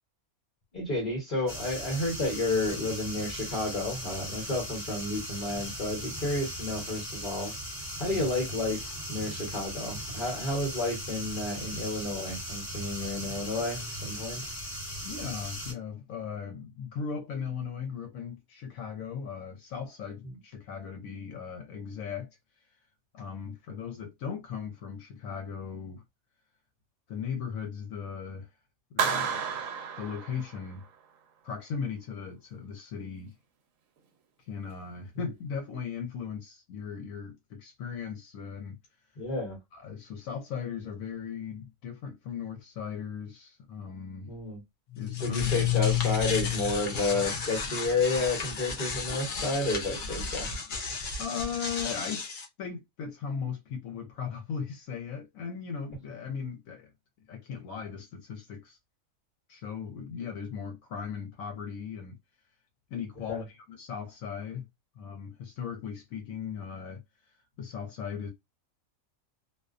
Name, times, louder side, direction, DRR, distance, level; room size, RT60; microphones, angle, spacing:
voice 1, 0.7-7.5 8.0-14.4 20.2-20.4 23.4-23.5 35.1-35.3 39.2-39.6 44.3-44.6 45.2-50.5 63.3-63.4, left 2 dB, 40° left, 1.0 m, -31 dB
sound 1, 1.5-15.7, equal, 15° right, 1.0 m, -38 dB
voice 2, 15.0-22.3 23.1-26.0 27.1-28.5 28.9-29.5 30.0-30.8 31.4-33.3 34.5-38.8 39.7-44.3 45.0-45.6 51.2-52.2 52.6-56.9 57.3-58.8 59.5-62.2 62.9-64.7 65.0-67.0 67.6-68.3, left 6 dB, 75° left, 1.0 m, -38 dB
Clapping, 29.0-30.9, right 7 dB, 75° right, 1.0 m, -31 dB
sound 2, 44.9-52.4, left 7 dB, 55° left, 0.5 m, -32 dB
2.5 x 2.1 x 2.4 m
omnidirectional pair, 1.5 m